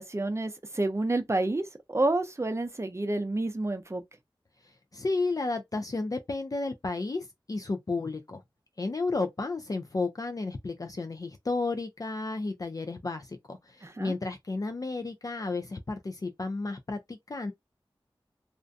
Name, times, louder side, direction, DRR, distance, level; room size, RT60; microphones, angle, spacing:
voice 1, 0.0-4.0 13.8-14.1, right 2 dB, 30° right, 0.5 m, -29 dB
voice 2, 4.6-8.4 8.8-17.5, left 3 dB, 40° left, 0.4 m, -32 dB
2.4 x 2.1 x 2.5 m
wide cardioid pair, 60°, 9 cm